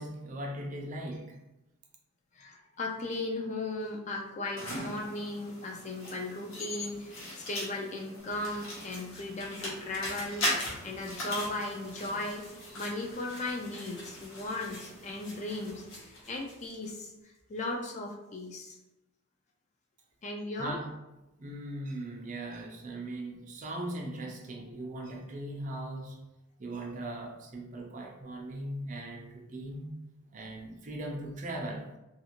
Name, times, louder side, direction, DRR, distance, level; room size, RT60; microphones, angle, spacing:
voice 1, 0.0-1.4 20.6-21.0 21.4-26.2 26.6-30.0 30.3-31.9, right 1 dB, 35° right, 1 dB, 0.4 m, -39 dB
voice 2, 2.3-12.4 12.8-17.1 17.5-18.8 20.2-20.8, left 2 dB, 35° left, 0 dB, 0.3 m, -37 dB
sound 1, 4.6-15.8, left 1 dB, 80° left, 1.0 m, -40 dB
sound 2, 8.2-16.9 17.3-17.4, left 1 dB, 55° left, 0.8 m, -48 dB
2.4 x 2.4 x 2.9 m, 0.97 s
head